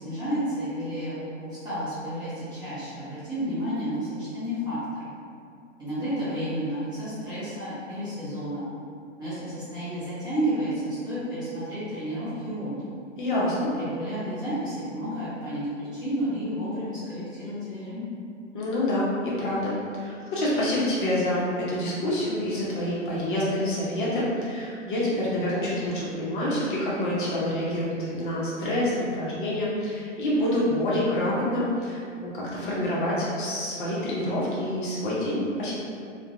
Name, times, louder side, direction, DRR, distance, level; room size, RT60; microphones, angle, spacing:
voice 1, 0.0-5.1 5.8-8.6 9.2-12.9 13.7-18.0, equal, 10° right, -14 dB, 0.6 m, -31 dB
voice 2, 13.2-13.7 18.5-19.7 20.0-35.7, left 1 dB, 40° left, -7 dB, 0.6 m, -27 dB
2.3 x 2.1 x 2.5 m, 2.4 s
figure-of-eight pair, 115°, 38 cm